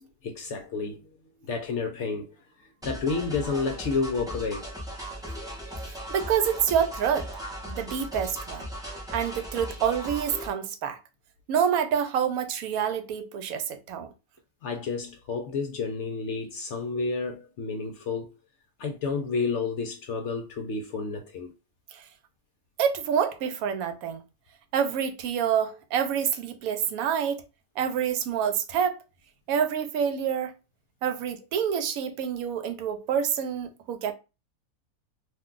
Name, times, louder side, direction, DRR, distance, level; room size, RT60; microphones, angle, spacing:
voice 1, 0.2-1.1 1.4-4.7 14.6-18.3 18.8-21.5, left 4 dB, 65° left, 0.7 m, -30 dB
sound 1, 2.8-10.5, equal, 5° right, 0.4 m, -38 dB
voice 2, 5.9-7.3 7.6-8.7 9.1-11.0 11.5-14.1 21.9-22.0 22.8-24.2 24.7-27.4 27.8-29.0 29.5-30.5 31.0-34.1, right 8 dB, 80° right, 1.0 m, -27 dB
2.5 x 2.2 x 3.7 m
omnidirectional pair, 1.5 m